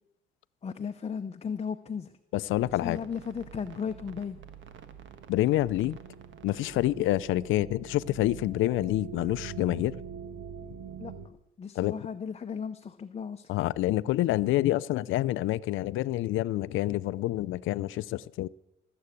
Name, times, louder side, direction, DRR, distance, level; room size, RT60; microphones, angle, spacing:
voice 1, 0.6-2.1 2.8-4.4 11.0-11.1 11.6-13.5, left 6 dB, 30° left, 0.7 m, -35 dB
voice 2, 2.3-3.0 5.3-6.0 6.4-10.0 11.8-11.9 13.5-18.5, left 15 dB, 85° left, 0.5 m, -27 dB
sound 1, 2.5-11.3, right 7 dB, 75° right, 1.4 m, -44 dB
19.0 x 7.8 x 8.3 m
cardioid pair, 90°, 20 cm